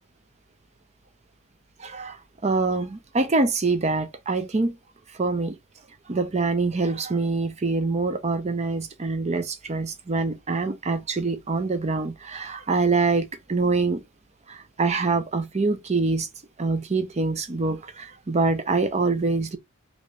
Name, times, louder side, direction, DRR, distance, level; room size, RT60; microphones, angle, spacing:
voice 1, 1.8-2.2 2.4-4.8 5.1-5.6 6.1-14.0 14.5-16.3 16.6-19.6, right 3 dB, 30° right, 0.5 m, -25 dB
2.9 x 2.6 x 3.3 m
head